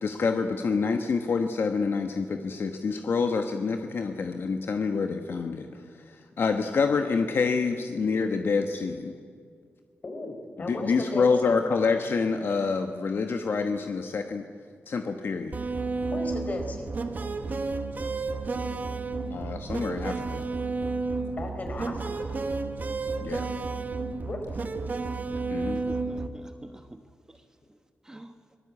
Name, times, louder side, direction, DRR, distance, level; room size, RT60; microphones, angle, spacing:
voice 1, 0.0-5.7 6.4-9.1 10.7-14.4 14.9-15.6 19.3-20.4 23.2-23.5 25.5-25.8, left 4 dB, 60° left, 5 dB, 1.3 m, -27 dB
voice 2, 10.0-11.6 16.1-17.1 21.4-22.4 24.2-24.6, left 2 dB, 40° left, 4 dB, 4.4 m, -36 dB
sound 1, 15.5-26.3, right 3 dB, 40° right, 1.4 m, -31 dB
voice 3, 25.7-27.0 27.3-27.8 28.0-28.4, right 1 dB, 15° right, 7 dB, 1.2 m, -47 dB
24.5 x 18.5 x 8.4 m, 2.1 s
wide cardioid pair, 140°, 4 cm